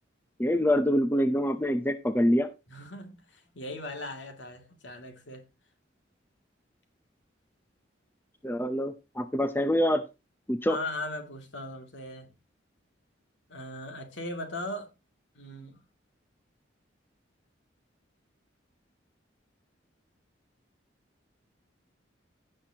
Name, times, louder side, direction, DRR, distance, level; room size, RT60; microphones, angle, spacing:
voice 1, 0.4-2.5 8.4-10.0 10.5-10.8, equal, 10° left, 0.7 m, -25 dB
voice 2, 2.7-5.4 10.7-12.3 13.5-14.9 15.3-15.8, left 1 dB, 70° left, 2.7 m, -38 dB
16.5 x 6.5 x 2.9 m
head